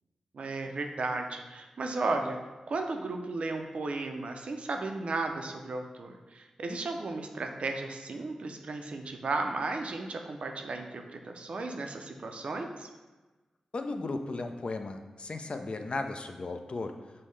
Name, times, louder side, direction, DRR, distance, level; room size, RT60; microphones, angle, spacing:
voice 1, 0.3-2.4 2.7-12.9, right 3 dB, 65° right, 4 dB, 0.4 m, -34 dB
voice 2, 13.7-16.9, left 3 dB, 55° left, 6 dB, 0.4 m, -35 dB
5.4 x 2.1 x 3.1 m, 1.2 s
cardioid pair, 40°, 2 cm